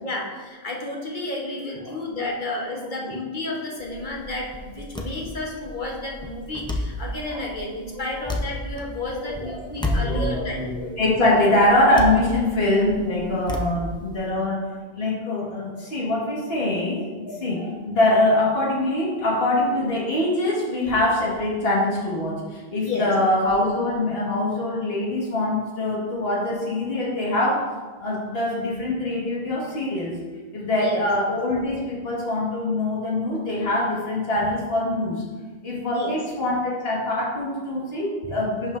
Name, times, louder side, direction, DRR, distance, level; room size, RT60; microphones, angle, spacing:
voice 1, 0.0-10.6 11.2-11.6 22.7-23.1 30.7-31.0 35.8-36.2, left 2 dB, 50° left, -2 dB, 1.2 m, -31 dB
sound 1, 3.8-14.3, left 1 dB, 5° left, 0.4 m, -32 dB
voice 2, 7.9-8.3 9.0-27.6 28.0-30.2 30.5-35.2 35.6-38.8, left 1 dB, 75° left, -5 dB, 1.8 m, -24 dB
11.0 x 5.4 x 2.5 m, 1.4 s
omnidirectional pair, 1.0 m